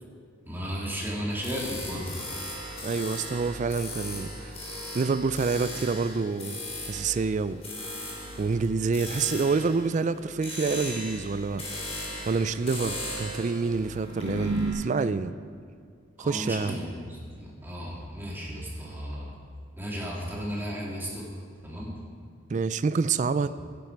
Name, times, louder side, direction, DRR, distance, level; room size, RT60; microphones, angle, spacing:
voice 1, 0.4-2.2 16.2-19.4 19.8-21.3 21.6-22.0, equal, 10° right, -4 dB, 2.7 m, -34 dB
sound 1, 1.4-14.7, equal, 30° left, 3.7 m, -36 dB
voice 2, 2.8-4.6 4.9-6.6 6.9-7.6 8.4-11.7 12.3-15.3 16.2-16.8 22.5-23.5, right 4 dB, 40° right, 14 dB, 0.3 m, -27 dB
16.0 x 11.0 x 4.6 m, 2.2 s
head